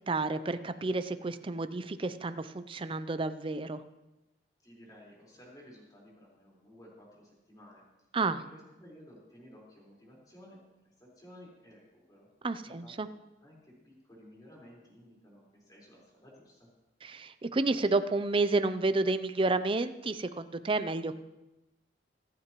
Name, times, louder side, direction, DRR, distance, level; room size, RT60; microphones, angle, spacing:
voice 1, 0.1-3.8 8.1-8.4 12.4-13.1 17.0-21.2, right 3 dB, 30° right, 11 dB, 0.5 m, -30 dB
voice 2, 4.6-7.8 8.3-10.6 11.0-12.3 12.6-16.7, equal, 20° left, -4 dB, 4.5 m, -55 dB
25.5 x 9.5 x 3.1 m, 1.0 s
head